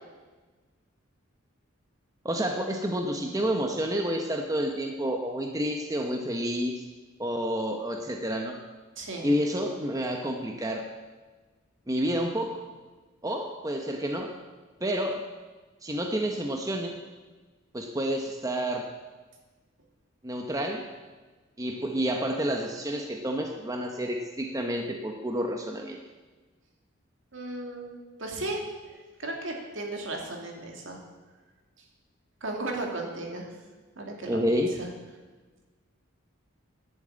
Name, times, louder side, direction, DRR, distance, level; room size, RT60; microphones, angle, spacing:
voice 1, 2.2-6.8 7.2-8.6 9.2-10.9 11.9-12.6 13.2-14.3 14.8-15.2 15.8-16.9 17.7-18.9 20.2-20.9 21.6-26.0 34.3-34.7, equal, 15° right, 3 dB, 0.8 m, -29 dB
voice 2, 9.0-9.3 27.3-28.6 28.9-31.0 32.4-33.5 34.0-34.4 34.8-34.9, right 2 dB, 60° right, 1 dB, 2.4 m, -35 dB
11.0 x 7.8 x 8.7 m, 1.3 s
head